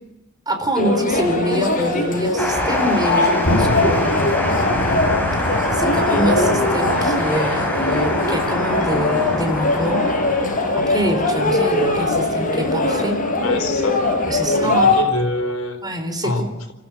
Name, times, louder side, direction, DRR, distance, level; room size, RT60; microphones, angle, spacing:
voice 1, 0.5-4.4 5.4-10.0 10.8-13.2 14.3-15.0 15.8-16.5, equal, 20° right, 6 dB, 4.1 m, -25 dB
sound 1, 0.8-15.0, left 2 dB, 40° left, 4.7 m, -21 dB
sound 2, 2.4-15.3, left 1 dB, 10° left, 5.7 m, -26 dB
Thunder, 3.4-10.3, left 1 dB, 70° left, 2.4 m, -27 dB
voice 2, 13.4-14.0 14.4-15.8 16.2-16.7, left 2 dB, 85° left, 6 dB, 4.0 m, -26 dB
29.5 x 15.0 x 7.5 m, 1.0 s
head